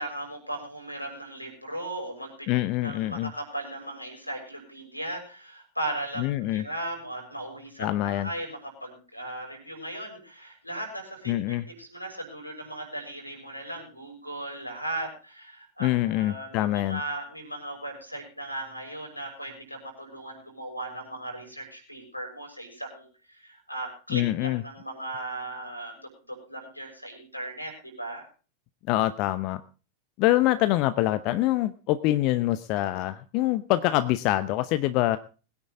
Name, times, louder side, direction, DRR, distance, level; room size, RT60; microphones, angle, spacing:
voice 1, 0.0-2.5 2.8-26.0 26.3-28.3, right 1 dB, 90° left, 3 dB, 6.4 m, -37 dB
voice 2, 2.5-3.3 6.2-6.6 7.8-8.3 11.3-11.7 15.8-17.0 24.1-24.6 28.9-29.6 30.2-35.2, left 15 dB, 40° left, 13 dB, 0.7 m, -25 dB
22.0 x 9.8 x 3.7 m, 0.36 s
figure-of-eight pair, 90°, 0 cm